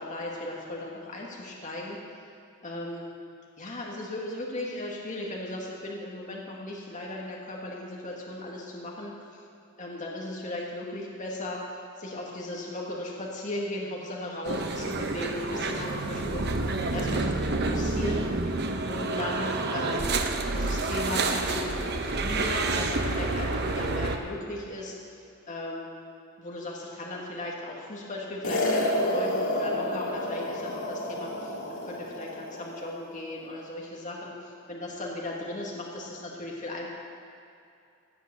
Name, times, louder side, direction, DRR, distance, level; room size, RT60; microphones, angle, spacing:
voice 1, 0.0-2.0 2.6-3.1 3.6-9.4 9.8-11.6 12.0-17.2 17.5-18.3 18.9-20.1 20.5-25.2 25.5-25.9 26.4-36.9, left 1 dB, 35° left, -3 dB, 1.7 m, -36 dB
sound 1, 14.4-24.2, right 3 dB, 50° right, 0.9 m, -29 dB
sound 2, 28.4-32.9, left 1 dB, 75° left, 2.0 m, -30 dB
16.5 x 7.7 x 6.7 m, 2.6 s
head